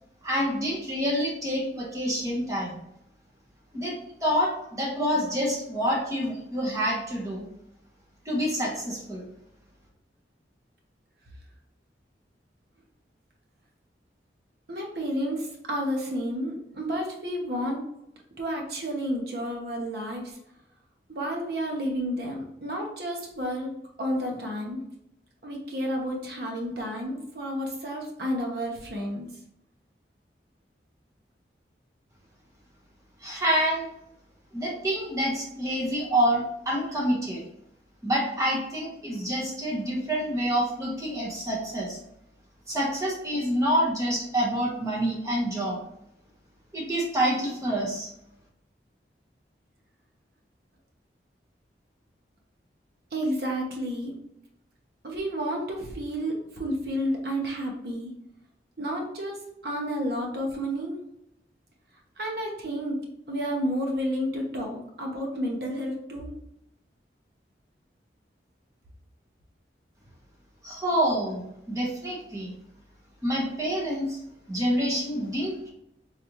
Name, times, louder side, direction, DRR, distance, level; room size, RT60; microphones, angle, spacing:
voice 1, 0.2-2.8 3.7-3.9 4.2-7.4 8.2-9.2 33.2-33.9 34.5-37.4 38.0-42.0 42.7-45.8 46.7-48.1 70.6-71.4 71.7-72.5 73.2-74.2 74.5-75.7, equal, 20° right, -3 dB, 1.1 m, -27 dB
voice 2, 14.7-17.8 18.4-20.4 21.1-23.7 24.0-24.8 25.4-29.3 53.1-54.1 55.0-58.1 58.8-61.0 62.2-63.0 63.3-66.3, equal, 60° right, 0 dB, 1.0 m, -31 dB
4.0 x 3.3 x 3.0 m, 0.80 s
head